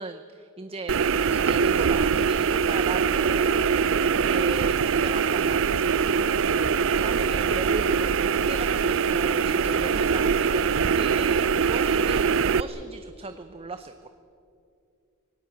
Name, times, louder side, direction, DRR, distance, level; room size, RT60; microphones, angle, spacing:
voice 1, 0.0-3.7 4.2-5.9 7.0-14.1, right 3 dB, 25° right, 8 dB, 0.8 m, -37 dB
sound 1, 0.9-12.6, right 6 dB, 65° right, 0.5 m, -23 dB
26.0 x 18.5 x 8.0 m, 2.5 s
head